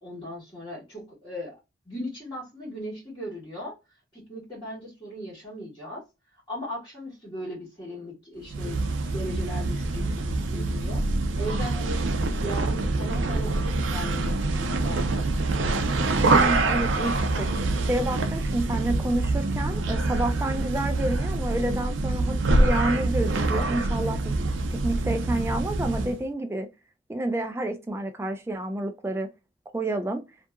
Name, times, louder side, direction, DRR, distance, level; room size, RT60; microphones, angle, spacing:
voice 1, 0.0-1.6 1.8-3.8 4.1-6.0 6.5-11.0 11.3-12.0 12.4-15.3, equal, 20° left, 1.3 m, -38 dB
sound 1, 8.4-26.2, right 2 dB, 85° right, 0.5 m, -25 dB
voice 2, 16.3-17.5 17.8-24.3 24.7-26.7 27.1-29.3 29.7-30.2, right 1 dB, 15° right, 0.3 m, -29 dB
2.7 x 2.4 x 2.2 m
head